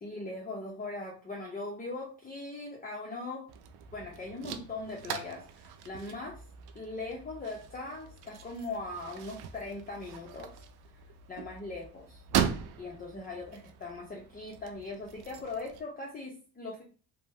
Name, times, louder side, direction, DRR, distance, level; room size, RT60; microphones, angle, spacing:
voice 1, 0.0-3.5 3.9-6.4 6.7-10.6 11.3-12.2 12.8-16.8, left 3 dB, 20° left, -2 dB, 0.7 m, -40 dB
sound 1, 3.5-15.8, right 8 dB, 70° right, 0.5 m, -39 dB
2.8 x 2.1 x 3.3 m, 0.38 s
cardioid pair, 95°, 39 cm